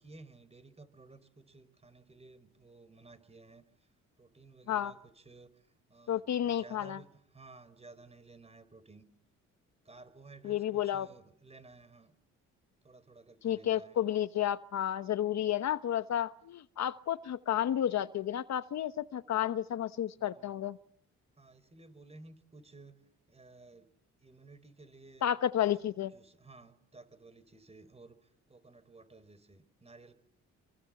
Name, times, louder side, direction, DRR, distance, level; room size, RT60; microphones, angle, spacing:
voice 1, 0.0-3.6 4.2-5.5 5.9-9.0 9.8-12.1 12.8-14.0 20.2-20.5 21.4-23.0 23.3-23.9 24.2-25.3 25.6-28.2 28.5-30.1, right 3 dB, 20° right, 4.5 m, -55 dB
voice 2, 6.1-7.0 10.4-11.1 13.4-20.8 25.2-26.1, left 11 dB, 65° left, 1.1 m, -31 dB
26.5 x 25.0 x 7.8 m
cardioid pair, 90°, 30 cm